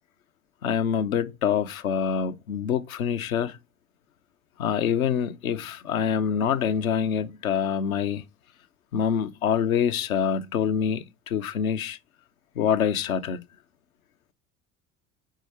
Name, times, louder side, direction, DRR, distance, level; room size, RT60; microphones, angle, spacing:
voice 1, 0.6-3.6 4.6-8.2 8.9-12.0 12.6-13.4, left 8 dB, 75° left, 0.8 m, -25 dB
5.1 x 4.6 x 6.2 m
figure-of-eight pair, 60°, 42 cm